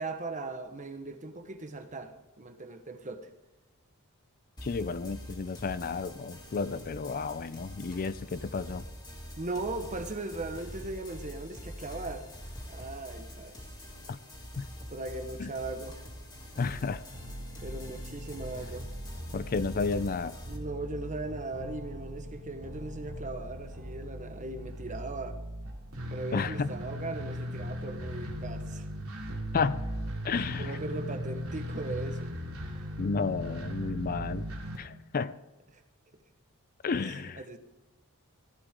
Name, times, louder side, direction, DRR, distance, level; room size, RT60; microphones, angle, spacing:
voice 1, 0.0-3.3 9.4-12.3 12.7-13.6 14.9-16.0 17.6-18.9 20.4-25.4 26.1-28.8 30.5-32.4 32.7-32.8 35.7-35.8 36.9-37.6, right 2 dB, 35° right, 7 dB, 1.2 m, -38 dB
voice 2, 4.6-8.8 14.1-14.2 14.6-14.7 15.4-15.5 16.6-17.0 19.3-20.4 26.3-26.7 29.5-29.9 30.2-30.8 33.0-34.5 34.8-35.4 36.8-37.4, left 4 dB, 40° left, 14 dB, 0.4 m, -32 dB
sound 1, 4.6-20.6, equal, 20° left, 2.6 m, -44 dB
sound 2, 17.1-34.8, equal, 75° right, 2.8 m, -39 dB
15.5 x 13.5 x 3.7 m, 1.0 s
head